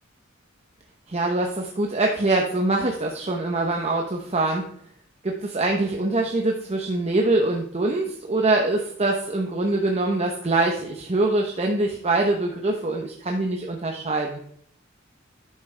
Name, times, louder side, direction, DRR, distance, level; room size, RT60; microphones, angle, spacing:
voice 1, 1.1-4.6 5.2-14.4, right 2 dB, 30° right, 1 dB, 0.9 m, -24 dB
11.0 x 9.9 x 3.4 m, 0.67 s
head